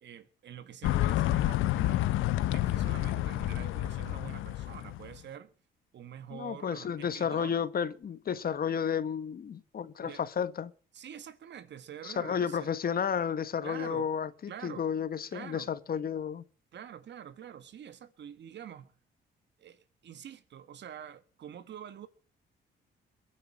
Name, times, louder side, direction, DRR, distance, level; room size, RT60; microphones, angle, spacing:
voice 1, 0.0-2.1 2.4-5.5 5.9-7.6 10.0-10.2 10.9-12.7 13.6-14.1 14.5-14.9 15.3-15.7 16.7-18.9 19.6-22.1, right 9 dB, 65° right, 1.7 m, -46 dB
sound 1, 0.8-5.2, left 14 dB, 85° left, 0.7 m, -29 dB
voice 2, 6.3-10.7 12.0-16.4, left 7 dB, 50° left, 1.3 m, -32 dB
22.0 x 7.6 x 7.6 m
cardioid pair, 90°, 20 cm